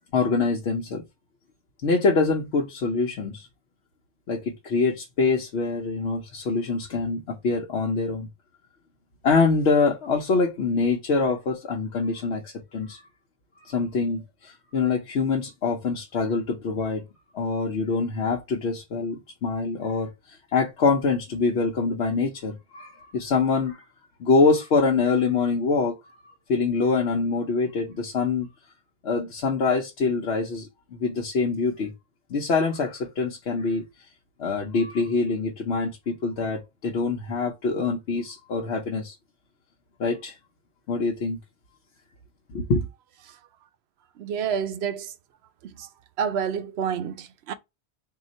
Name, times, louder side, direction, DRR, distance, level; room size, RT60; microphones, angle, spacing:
voice 1, 0.1-1.0 1.8-3.5 4.3-8.3 9.2-13.0 13.6-17.0 17.3-23.8 24.2-26.0 26.5-28.5 29.0-31.9 32.3-33.8 34.4-39.2 40.0-40.4 40.9-41.4 42.5-42.9, left 4 dB, 80° left, 1.0 m, -25 dB
voice 2, 44.2-45.1 45.8-45.9 46.2-47.5, right 7 dB, 75° right, 0.8 m, -28 dB
3.8 x 2.5 x 4.0 m
omnidirectional pair, 1.1 m